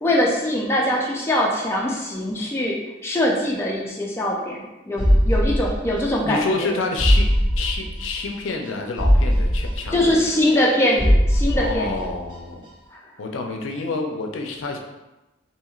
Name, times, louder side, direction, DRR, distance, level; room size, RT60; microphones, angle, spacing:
voice 1, 0.0-2.7 3.0-4.6 4.9-6.7 9.9-12.1 12.9-13.0, left 1 dB, 15° left, -3 dB, 0.4 m, -22 dB
sound 1, 5.0-6.3 6.6-6.7 7.0-8.3 8.6-8.7 9.0-10.7 11.0-12.3 12.6-12.7, equal, 90° right, 1.1 m, -20 dB
voice 2, 6.2-7.3 7.6-10.2 11.6-12.7 13.2-14.8, left 3 dB, 85° left, 2 dB, 0.4 m, -28 dB
2.9 x 2.8 x 2.3 m, 1.0 s
head